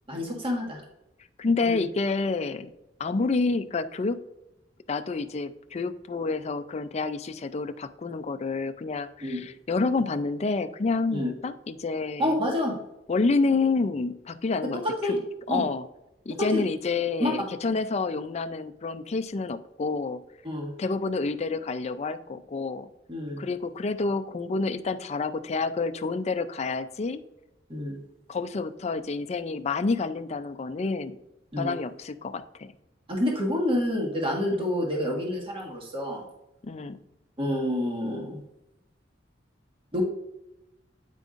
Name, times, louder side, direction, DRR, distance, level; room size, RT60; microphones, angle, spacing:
voice 1, 0.1-0.8 1.6-1.8 9.2-9.4 11.1-11.3 12.2-12.7 15.0-15.2 15.5-15.6 16.4-16.6 17.2-17.3 20.4-20.7 23.1-23.4 27.7-28.0 31.5-31.7 33.1-36.2 37.4-38.4 39.9-40.0, left 1 dB, 30° right, -1 dB, 1.5 m, -28 dB
voice 2, 1.4-2.7 3.0-4.2 4.9-12.4 13.1-15.2 15.5-15.8 16.3-20.2 20.8-22.9 23.4-27.2 28.3-31.2 31.6-32.7 34.5-34.7 36.6-37.0, left 3 dB, 35° left, 10 dB, 0.4 m, -28 dB
9.0 x 5.3 x 2.5 m, 0.90 s
head